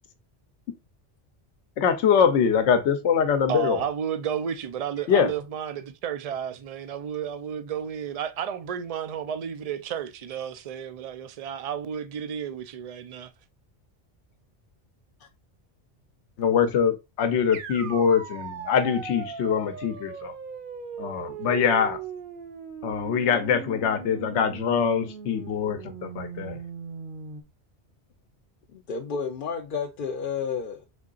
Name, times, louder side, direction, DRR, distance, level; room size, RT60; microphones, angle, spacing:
voice 1, 1.8-3.8 5.1-5.3 16.4-20.3 21.0-22.0 22.8-26.6, left 7 dB, 75° left, 1.0 m, -23 dB
voice 2, 3.5-13.3, right 8 dB, 70° right, 0.3 m, -32 dB
sound 1, 17.5-27.4, right 6 dB, 55° right, 0.8 m, -39 dB
voice 3, 28.7-30.9, left 6 dB, 55° left, 0.6 m, -31 dB
5.2 x 3.7 x 2.4 m
omnidirectional pair, 1.2 m